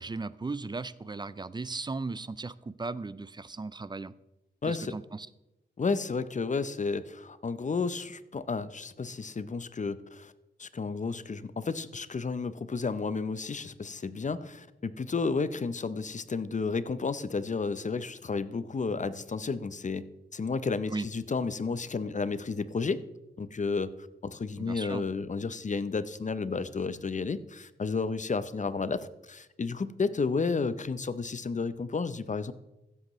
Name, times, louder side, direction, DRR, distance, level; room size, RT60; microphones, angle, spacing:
voice 1, 0.0-4.1 4.7-5.3 20.9-21.1 24.6-25.1, right 3 dB, 25° right, 17 dB, 0.4 m, -37 dB
voice 2, 4.6-4.9 5.8-10.3 10.6-20.0 20.3-23.0 23.4-23.9 24.2-32.5, left 4 dB, 40° left, 14 dB, 0.6 m, -32 dB
15.5 x 8.0 x 3.1 m, 0.94 s
cardioid pair, 70°, 19 cm